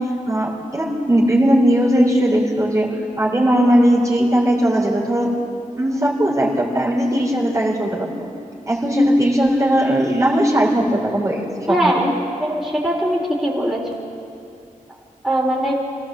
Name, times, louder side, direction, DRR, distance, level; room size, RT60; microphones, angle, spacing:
voice 1, 0.0-5.3 5.8-8.3 8.7-12.0, equal, 25° right, -3 dB, 3.5 m, -18 dB
voice 2, 11.7-12.1 12.4-13.8 15.2-15.7, right 1 dB, 5° right, -3 dB, 3.6 m, -20 dB
26.5 x 17.5 x 7.4 m, 2.5 s
wide cardioid pair, 120°, 14 cm